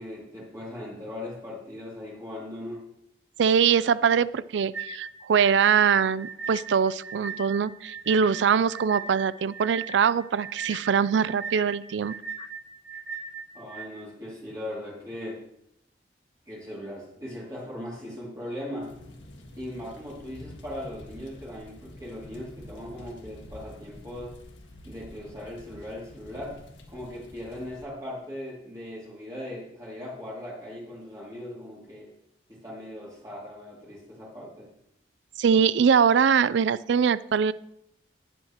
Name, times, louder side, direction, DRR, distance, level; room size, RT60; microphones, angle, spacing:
voice 1, 0.0-2.9 13.5-15.4 16.5-18.9 19.6-24.3 24.8-26.6 26.9-32.1 32.5-34.7, left 1 dB, 20° right, -6 dB, 2.4 m, -39 dB
voice 2, 3.4-12.5 35.4-37.5, right 7 dB, 75° right, 18 dB, 0.4 m, -23 dB
sound 1, 4.7-13.9, right 5 dB, 60° right, 2.5 m, -38 dB
sound 2, 18.8-27.8, left 1 dB, 90° left, 1.6 m, -48 dB
19.0 x 7.7 x 2.9 m, 0.78 s
head